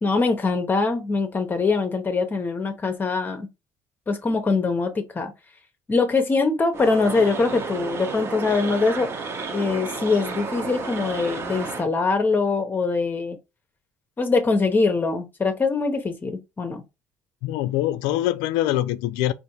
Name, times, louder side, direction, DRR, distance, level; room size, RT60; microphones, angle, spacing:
voice 1, 0.0-3.5 4.1-5.3 5.9-9.1 9.5-13.4 14.2-16.8, left 4 dB, 30° left, 0.7 m, -23 dB
sound 1, 6.7-11.9, right 4 dB, 40° right, 0.8 m, -32 dB
voice 2, 17.4-19.3, left 14 dB, 85° left, 0.3 m, -24 dB
3.5 x 2.5 x 2.9 m
supercardioid pair, 85°, 7 cm